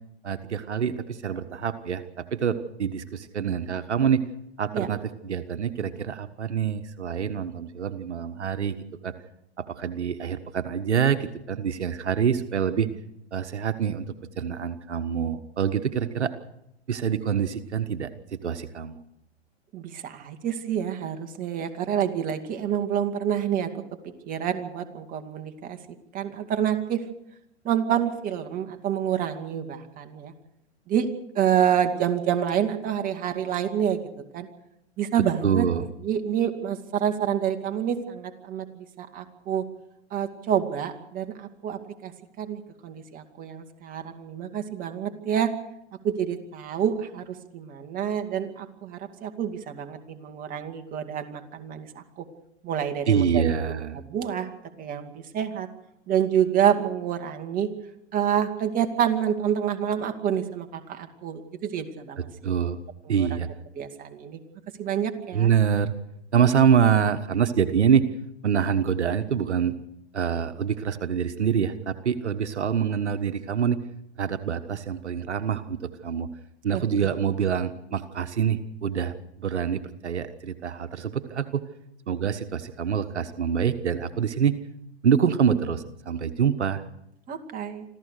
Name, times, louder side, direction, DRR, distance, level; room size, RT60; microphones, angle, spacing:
voice 1, 0.2-4.2 4.6-8.8 9.0-9.1 9.6-12.9 13.3-14.1 14.4-16.3 16.9-19.0 35.4-35.9 53.1-54.0 62.2-62.8 63.1-63.5 65.3-65.9 66.3-68.1 68.4-69.7 70.1-73.8 74.2-76.3 76.6-81.6 82.1-84.6 85.0-86.8, right 7 dB, 75° right, 10 dB, 1.4 m, -25 dB
voice 2, 19.7-23.7 24.0-25.8 26.1-27.0 27.6-30.3 30.9-31.1 31.3-34.0 34.3-34.5 35.0-35.7 36.0-39.6 40.1-42.1 42.4-45.5 46.0-51.9 52.2-52.3 52.6-53.4 53.9-55.7 56.1-57.7 58.1-62.3 63.2-63.3 63.7-64.4 64.8-65.5 76.7-77.1 87.3-87.8, right 9 dB, 25° right, 6 dB, 2.4 m, -27 dB
26.5 x 15.0 x 6.7 m, 0.81 s
hypercardioid pair, 120°, 34 cm